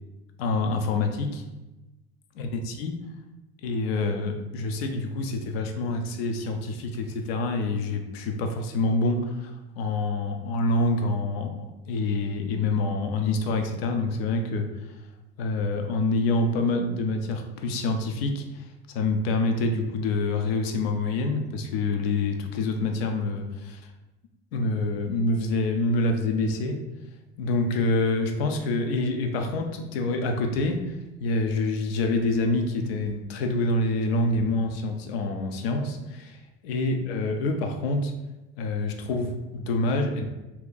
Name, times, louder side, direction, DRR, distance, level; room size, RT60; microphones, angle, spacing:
voice 1, 0.4-1.4 2.4-3.0 3.6-14.7 15.4-18.7 18.9-23.8 24.5-26.8 27.4-38.1 38.6-40.2, left 2 dB, 75° left, 5 dB, 0.6 m, -26 dB
2.9 x 2.5 x 3.7 m, 1.0 s
hypercardioid pair, 85°, 31 cm